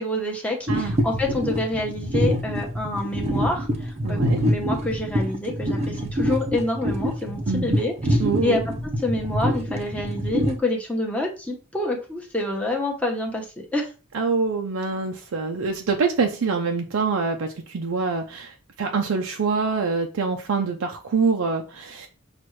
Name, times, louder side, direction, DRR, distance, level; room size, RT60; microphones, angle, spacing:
voice 1, 0.0-8.6 9.0-13.9, left 1 dB, 5° left, 0.9 m, -27 dB
sound 1, 0.7-10.6, equal, 30° right, 0.6 m, -25 dB
voice 2, 0.7-1.0 4.0-4.4 7.5-7.8 8.2-8.6 14.1-22.1, right 4 dB, 80° right, 0.5 m, -25 dB
6.0 x 2.4 x 3.1 m
head